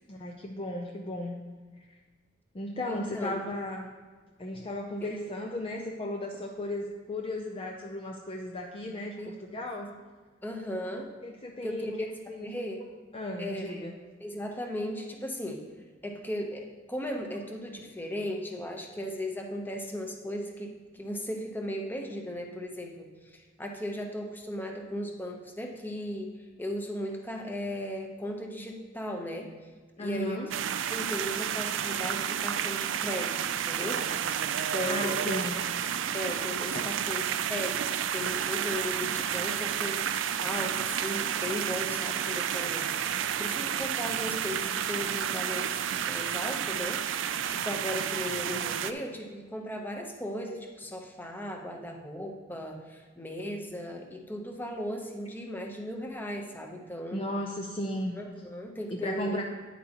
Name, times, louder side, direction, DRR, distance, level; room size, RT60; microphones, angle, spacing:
voice 1, 0.1-1.4 1.8-1.9 2.5-3.9 4.4-9.9 11.2-12.6 13.1-13.9 30.0-30.5 34.8-35.6 36.7-37.1 37.8-37.9 57.1-58.2 58.9-59.4, left 1 dB, 30° left, 1 dB, 0.5 m, -35 dB
voice 2, 2.9-3.5 5.0-5.1 9.2-9.4 10.4-11.1 11.6-12.1 12.4-12.8 13.4-13.9 14.2-15.6 16.0-29.5 30.0-30.4 30.9-35.4 36.1-40.0 40.4-43.1 43.4-57.2 58.1-59.4, equal, 10° left, 2 dB, 0.8 m, -37 dB
sound 1, 30.5-48.9, right 9 dB, 70° right, 0.4 m, -31 dB
9.7 x 8.2 x 2.9 m, 1.4 s
head